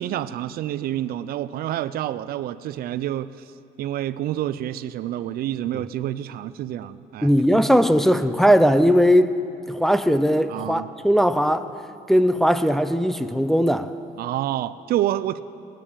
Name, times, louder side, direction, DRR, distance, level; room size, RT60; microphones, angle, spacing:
voice 1, 0.0-3.5 3.8-7.6 10.5-10.9 14.2-15.4, right 12 dB, 65° right, 0.4 m, -28 dB
voice 2, 7.2-9.3 9.7-11.8 12.1-13.9, equal, ahead, 0.5 m, -19 dB
19.5 x 10.0 x 5.0 m
cardioid pair, 110°, 17 cm